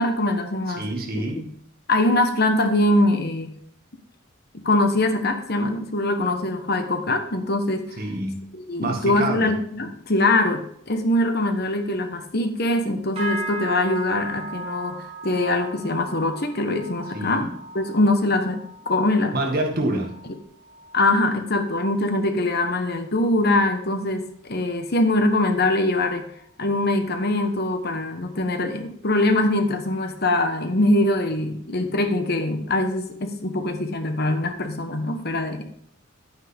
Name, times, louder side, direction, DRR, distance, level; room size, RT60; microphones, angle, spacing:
voice 1, 0.0-0.8 1.1-1.5 1.9-3.5 4.5-7.9 8.5-17.5 17.7-18.6 18.8-19.3 20.9-26.3 26.6-35.7, left 2 dB, 50° left, 6 dB, 1.2 m, -23 dB
voice 2, 0.8-1.5 8.0-8.5 8.8-9.5 17.1-17.5 19.3-20.2, right 1 dB, 45° right, 1 dB, 2.0 m, -27 dB
sound 1, 13.2-22.7 23.0-23.4 23.8-24.2 24.7-24.8, right 2 dB, 30° right, 4.7 m, -37 dB
11.0 x 9.1 x 3.6 m, 0.67 s
head